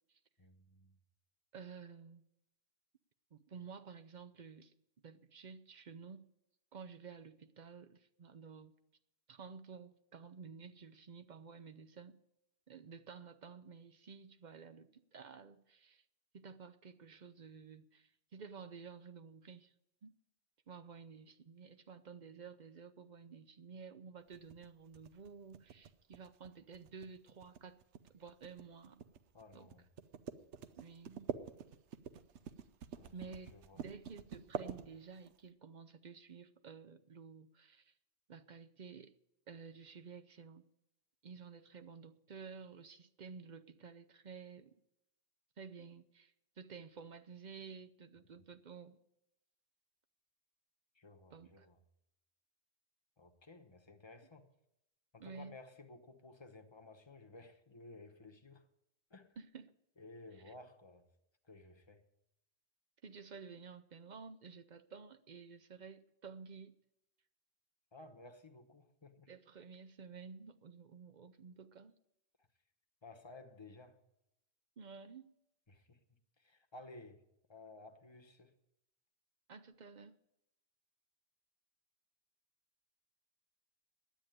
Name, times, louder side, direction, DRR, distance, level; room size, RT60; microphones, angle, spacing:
voice 1, 0.4-1.0 29.3-29.9 33.0-33.1 33.5-33.8 50.9-51.8 53.2-54.5 55.1-58.6 59.1-59.3 60.0-61.0 61.5-62.0 67.9-69.3 73.0-74.0 75.7-76.0 76.4-77.2 77.5-78.5, left 2 dB, 25° left, 1.0 m, -56 dB
voice 2, 1.5-2.2 3.3-4.7 5.0-6.3 6.7-8.7 9.3-12.2 12.7-16.0 16.3-19.7 20.0-20.1 20.7-27.8 28.1-29.0 29.5-29.7 30.8-31.3 33.1-37.9 38.3-39.1 39.5-40.7 41.2-44.8 45.6-49.0 51.3-51.7 55.2-55.5 59.4-59.7 60.3-60.5 63.0-66.7 69.3-72.0 74.8-75.3 79.5-80.1, right 5 dB, 50° right, 0.6 m, -52 dB
sound 1, 24.3-35.4, right 7 dB, 80° right, 1.0 m, -47 dB
10.5 x 8.8 x 9.1 m
omnidirectional pair, 1.2 m